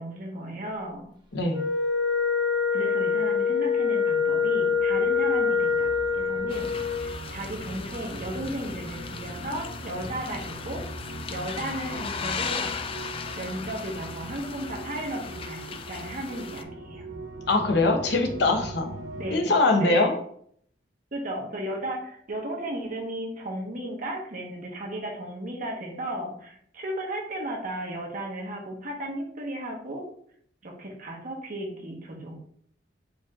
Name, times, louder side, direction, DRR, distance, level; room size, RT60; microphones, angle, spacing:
voice 1, 0.0-1.1 2.7-5.9 6.1-6.7 7.0-10.8 11.3-12.7 13.4-17.0 19.2-20.2 21.1-30.1 30.6-32.3, right 1 dB, 45° right, 0 dB, 1.0 m, -35 dB
voice 2, 1.3-1.6 17.5-18.9 19.3-20.1, left 2 dB, 65° left, 4 dB, 0.8 m, -22 dB
Wind instrument woodwind instrument, 1.5-7.1, left 5 dB, 25° right, 0.8 m, -25 dB
sound 1, 4.4-19.4, right 1 dB, 75° right, 0.7 m, -40 dB
sound 2, 6.5-16.6, left 6 dB, 30° left, 0.3 m, -37 dB
4.9 x 2.7 x 3.5 m, 0.63 s
head